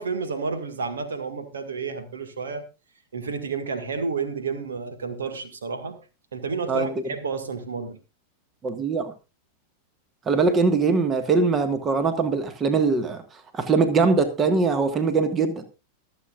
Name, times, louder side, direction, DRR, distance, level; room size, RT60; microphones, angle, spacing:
voice 1, 0.0-2.7 3.1-6.0 6.3-8.0, right 5 dB, 65° right, 8 dB, 1.9 m, -30 dB
voice 2, 8.6-9.1 10.3-13.2 13.5-15.6, right 4 dB, 25° right, 10 dB, 1.6 m, -22 dB
24.0 x 8.2 x 2.5 m, 0.28 s
figure-of-eight pair, 90°, 0 cm